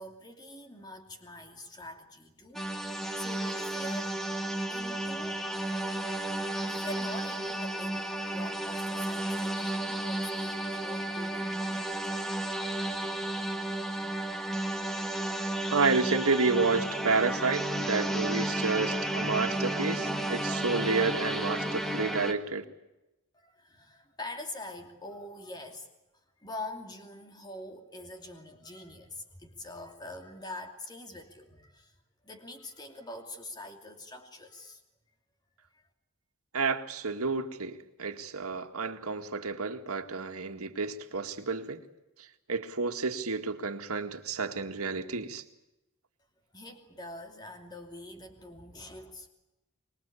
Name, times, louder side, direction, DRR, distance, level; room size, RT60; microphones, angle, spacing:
voice 1, 0.0-4.3 4.7-5.4 6.7-12.3 23.3-25.9 26.4-31.9 32.2-34.8 35.7-35.8 46.5-49.3, left 2 dB, 20° left, 2.7 m, -44 dB
sound 1, 2.6-22.3, right 1 dB, ahead, 1.5 m, -32 dB
voice 2, 15.7-22.6 36.5-41.8 42.5-45.4, right 4 dB, 80° right, 2.0 m, -30 dB
25.5 x 22.0 x 8.6 m
head